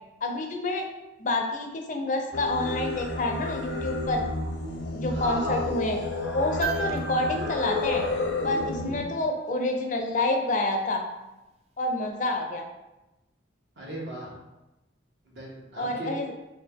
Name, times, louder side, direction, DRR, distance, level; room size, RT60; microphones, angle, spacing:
voice 1, 0.2-0.9 1.2-4.2 4.9-6.0 6.3-8.1 8.4-11.0 11.8-12.6 15.8-16.3, left 2 dB, 40° left, 3 dB, 0.4 m, -28 dB
Singing, 2.3-9.1, left 2 dB, 85° left, 0.7 m, -31 dB
voice 2, 5.1-5.6 13.8-14.3 15.2-16.1, right 1 dB, 70° right, -4 dB, 1.2 m, -35 dB
sound 1, 6.6-8.9 11.0-11.1, right 8 dB, 35° right, 0.3 m, -37 dB
4.2 x 2.4 x 3.5 m, 1.0 s
head